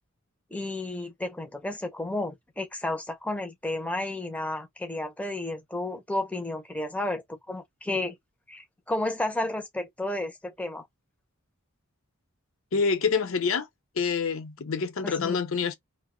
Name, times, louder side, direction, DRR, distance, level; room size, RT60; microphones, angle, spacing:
voice 1, 0.5-8.1 8.5-10.8 15.0-15.4, left 2 dB, 5° left, 0.5 m, -32 dB
voice 2, 12.7-13.7 14.0-15.8, left 5 dB, 70° left, 0.6 m, -26 dB
2.6 x 2.1 x 3.6 m
head